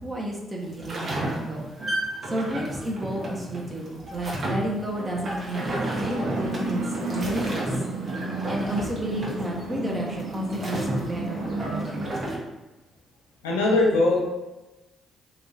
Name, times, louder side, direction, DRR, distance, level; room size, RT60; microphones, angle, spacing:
voice 1, 0.0-1.7 2.2-7.7 8.5-12.0, right 1 dB, 25° right, -2 dB, 0.8 m, -31 dB
sound 1, 0.6-12.4, right 1 dB, 50° right, 1.1 m, -33 dB
sound 2, 5.6-12.1, right 2 dB, 70° right, 0.6 m, -32 dB
voice 2, 13.4-14.2, left 2 dB, 80° left, -2 dB, 0.6 m, -20 dB
3.5 x 3.1 x 2.7 m, 1.0 s
figure-of-eight pair, 40°, 0 cm